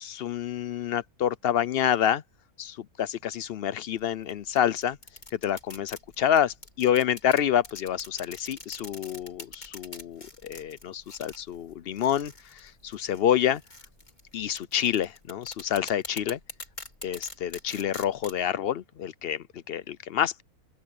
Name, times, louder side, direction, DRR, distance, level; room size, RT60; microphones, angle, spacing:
voice 1, 0.0-2.2 2.6-5.0 5.3-13.6 14.3-16.4 17.0-20.4, left 10 dB, 60° left, 0.6 m, -28 dB
sound 1, 4.0-18.4, left 2 dB, 30° left, 3.1 m, -45 dB
open air
omnidirectional pair, 1.6 m